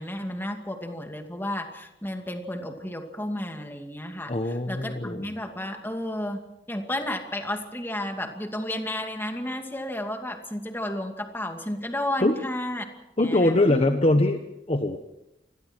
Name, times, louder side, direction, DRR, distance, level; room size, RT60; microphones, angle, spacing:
voice 1, 0.0-6.4 6.7-12.9 13.2-14.0, left 1 dB, 15° left, 4 dB, 2.4 m, -32 dB
voice 2, 4.3-5.3 12.2-12.4 13.2-14.4 14.7-15.0, left 2 dB, 35° left, 6 dB, 1.2 m, -22 dB
28.0 x 21.5 x 4.6 m, 0.89 s
head